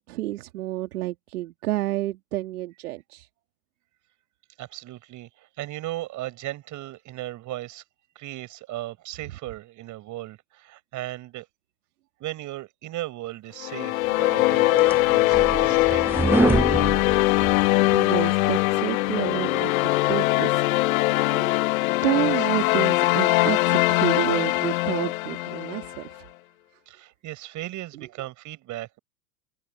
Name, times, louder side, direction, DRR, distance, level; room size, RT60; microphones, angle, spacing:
voice 1, 0.1-3.3 17.9-19.7 20.1-20.8 21.3-21.6 22.0-26.2, right 16 dB, 60° right, 2.1 m, -29 dB
voice 2, 4.6-7.8 8.1-11.5 12.2-16.3 22.2-22.3 26.9-29.0, right 16 dB, 35° right, 6.7 m, -37 dB
sound 1, 13.6-26.0, left 19 dB, 55° left, 1.1 m, -22 dB
sound 2, 14.3-18.0, right 3 dB, 5° right, 0.8 m, -26 dB
hypercardioid pair, 105°, 50 cm